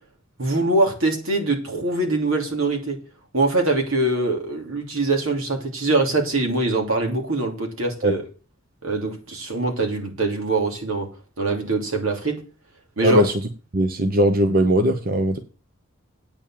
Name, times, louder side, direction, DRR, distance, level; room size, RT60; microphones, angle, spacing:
voice 1, 0.4-3.0 3.3-8.2 8.8-11.1 11.4-12.4 13.0-13.3, right 2 dB, 85° right, 2 dB, 2.9 m, -23 dB
voice 2, 13.0-13.3 13.7-15.4, equal, 45° right, 7 dB, 0.9 m, -19 dB
8.9 x 7.1 x 7.4 m, 0.36 s
head